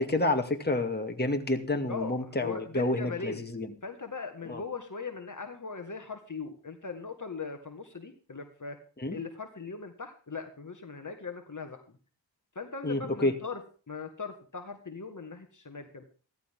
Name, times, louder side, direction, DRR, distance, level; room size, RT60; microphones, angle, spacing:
voice 1, 0.0-3.7 4.5-4.6 9.0-9.2 12.8-13.3, left 2 dB, 25° left, 4 dB, 2.3 m, -29 dB
voice 2, 1.9-3.4 3.8-8.8 9.1-12.0 12.6-13.6 13.9-16.1, left 4 dB, 45° left, 5 dB, 1.8 m, -40 dB
15.5 x 14.5 x 3.7 m, 0.38 s
wide cardioid pair, 65°, 42 cm